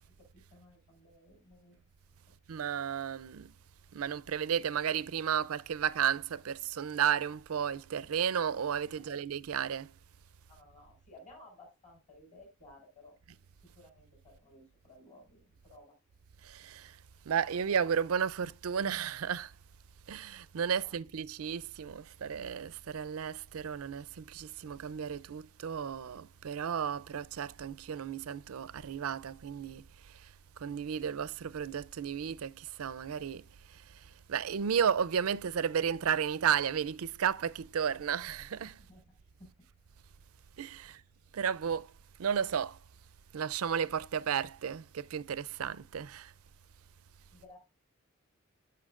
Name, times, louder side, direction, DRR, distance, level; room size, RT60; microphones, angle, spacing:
voice 1, 0.1-1.8 9.0-9.2 10.5-13.2 13.6-16.0 20.8-21.0 38.8-39.0 39.4-39.7 40.8-41.0 47.3-47.6, left 1 dB, 35° left, 4.4 m, -57 dB
voice 2, 2.5-3.5 3.9-9.9 16.4-17.0 17.3-19.5 20.1-30.3 30.6-38.8 40.6-41.0 41.3-41.9 42.2-42.8 43.3-46.3, right 7 dB, 90° right, 0.4 m, -33 dB
14.0 x 5.7 x 2.4 m
head